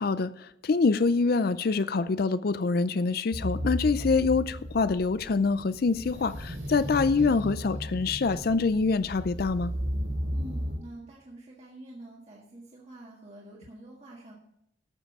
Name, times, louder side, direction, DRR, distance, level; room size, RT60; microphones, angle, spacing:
voice 1, 0.0-9.7, left 4 dB, 50° left, 0.4 m, -25 dB
sound 1, 3.3-10.8, equal, 55° right, 3.6 m, -34 dB
voice 2, 10.3-14.3, right 1 dB, 35° right, 1.8 m, -47 dB
12.5 x 7.5 x 4.8 m
head